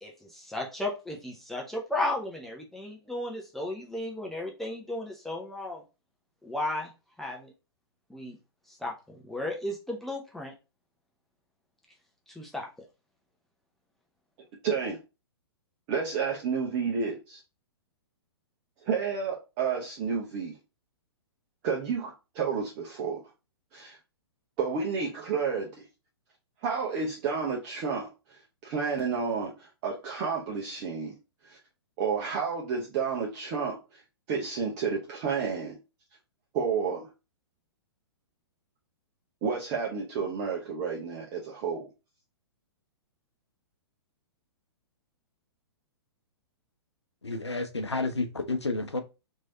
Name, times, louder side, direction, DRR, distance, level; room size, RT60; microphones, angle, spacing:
voice 1, 0.0-5.8 6.4-6.9 7.2-7.5 8.1-8.4 8.7-10.5 12.3-12.7, left 1 dB, ahead, 0.6 m, -34 dB
voice 2, 14.6-15.0 15.9-17.4 18.8-20.6 21.6-23.2 23.7-24.0 24.6-25.8 26.6-28.1 28.6-31.1 31.5-31.6 32.0-34.0 34.3-35.8 36.5-37.1 39.4-41.9, right 5 dB, 35° right, 0.8 m, -30 dB
voice 3, 47.2-49.0, left 3 dB, 85° left, 0.7 m, -30 dB
3.1 x 2.7 x 4.1 m
figure-of-eight pair, 115°, 14 cm